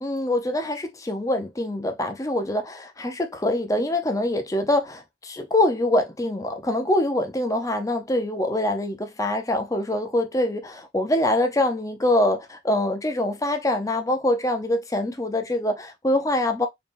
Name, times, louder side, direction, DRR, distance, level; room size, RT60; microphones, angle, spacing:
voice 1, 0.0-16.7, left 1 dB, 20° left, 0.7 m, -24 dB
4.0 x 3.6 x 2.6 m
head